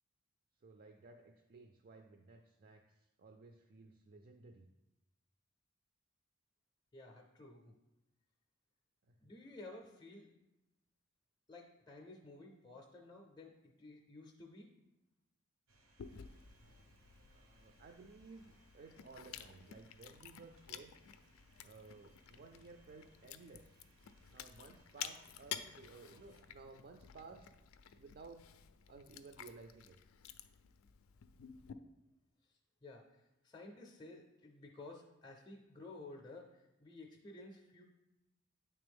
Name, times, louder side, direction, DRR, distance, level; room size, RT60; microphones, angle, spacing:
voice 1, 0.6-4.7 9.0-9.2 17.3-21.0 21.6-23.8 24.3-27.5 27.9-28.5 28.9-30.0, right 3 dB, 45° right, 4 dB, 0.4 m, -57 dB
voice 2, 6.9-7.7 9.2-10.3 11.5-14.7 32.8-33.0 33.4-37.8, left 2 dB, 20° left, 2 dB, 0.5 m, -53 dB
sound 1, 15.7-27.5, right 1 dB, 90° right, 1.2 m, -69 dB
Chewing mastication, 16.0-31.7, left 9 dB, 85° left, 0.3 m, -52 dB
8.7 x 3.4 x 3.5 m, 0.96 s
head